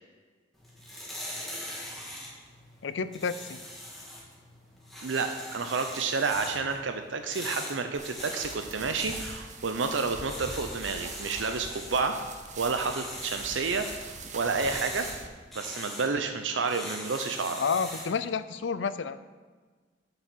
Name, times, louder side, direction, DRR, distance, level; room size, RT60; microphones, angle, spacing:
sound 1, 0.6-18.2, left 1 dB, ahead, 2.0 m, -42 dB
voice 1, 2.8-3.6 17.6-19.2, left 5 dB, 75° left, 13 dB, 0.5 m, -30 dB
voice 2, 5.0-12.2 12.6-15.1 15.5-17.6, right 4 dB, 85° right, 7 dB, 0.6 m, -30 dB
sound 2, 7.9-15.3, right 4 dB, 40° right, 0.9 m, -42 dB
8.1 x 6.8 x 6.2 m, 1.4 s
head